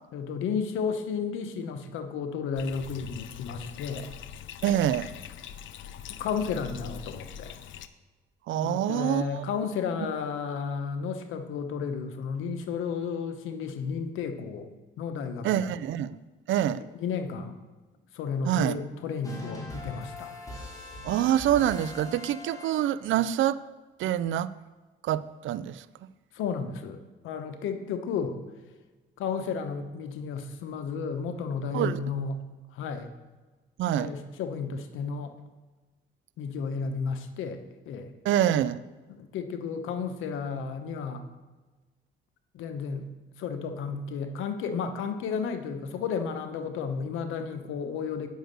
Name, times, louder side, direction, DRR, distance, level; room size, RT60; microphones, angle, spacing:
voice 1, 0.1-4.1 6.1-7.5 8.6-14.7 15.0-15.6 16.8-17.6 18.1-20.3 26.3-27.0 27.2-28.4 29.2-32.4 32.7-33.1 34.0-35.3 36.4-37.6 37.9-38.1 39.1-41.2 42.5-43.0 43.4-48.3, left 6 dB, 90° left, 8 dB, 1.0 m, -32 dB
Bathtub (filling or washing), 2.6-7.9, left 9 dB, 75° left, 0.6 m, -43 dB
voice 2, 4.6-5.1 8.5-9.4 15.4-16.2 16.5-16.8 18.4-18.8 21.0-23.6 24.0-24.5 25.0-25.8 31.7-32.0 33.8-34.1 38.2-38.8, right 11 dB, 75° right, 16 dB, 0.5 m, -26 dB
sound 1, 19.2-23.1, left 2 dB, 15° left, 2.8 m, -41 dB
9.2 x 6.3 x 6.6 m, 1.3 s
cardioid pair, 90°, 20 cm